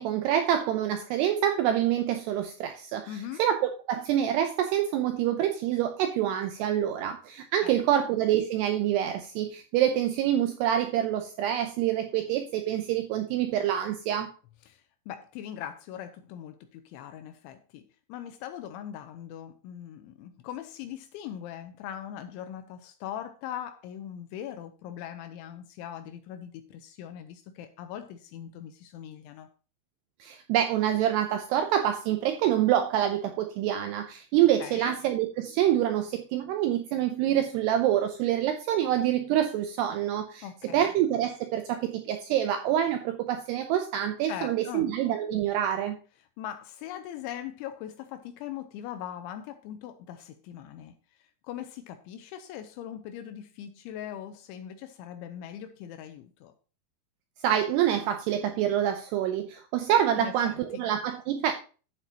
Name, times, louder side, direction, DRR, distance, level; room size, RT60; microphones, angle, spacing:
voice 1, 0.0-14.3 30.2-40.5 40.7-46.0 57.4-61.5, right 11 dB, 85° right, 2.3 m, -26 dB
voice 2, 3.1-3.4 7.6-8.0 14.7-17.8 18.1-29.5 34.6-35.0 40.4-40.9 44.2-44.9 46.4-50.9 51.2-56.5 60.1-60.8, left 10 dB, 85° left, 3.0 m, -41 dB
11.5 x 8.2 x 2.9 m
omnidirectional pair, 5.6 m